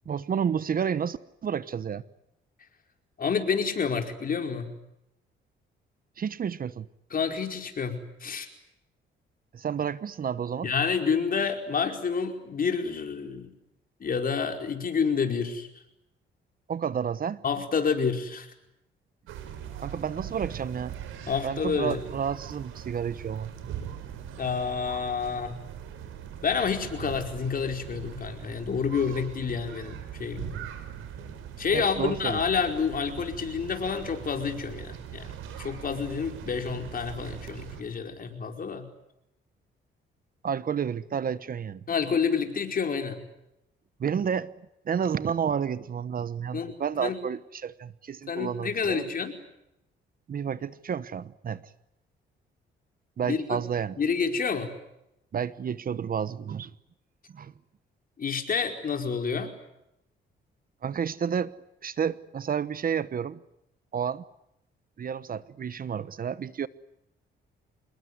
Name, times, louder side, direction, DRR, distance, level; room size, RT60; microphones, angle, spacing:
voice 1, 0.1-2.0 6.2-6.9 9.5-10.7 16.7-17.4 19.8-21.0 21.4-23.5 31.7-32.4 40.4-41.8 44.0-44.5 44.8-49.1 50.3-51.7 53.2-54.0 55.3-56.7 57.3-57.5 60.8-61.5 61.8-63.4 63.9-64.2 65.0-66.7, right 7 dB, 45° right, 17 dB, 1.0 m, -30 dB
voice 2, 3.2-4.7 7.1-8.5 10.6-13.5 14.0-15.7 17.4-18.5 21.2-22.0 24.4-25.5 26.4-30.5 31.6-38.9 41.9-43.2 46.5-47.2 48.3-49.3 53.2-53.6 54.0-54.7 58.2-59.5, left 6 dB, 45° left, 5 dB, 4.9 m, -29 dB
sound 1, 19.3-37.8, right 9 dB, 90° right, 5.0 m, -41 dB
27.0 x 21.0 x 9.7 m, 0.84 s
cardioid pair, 90°, 20 cm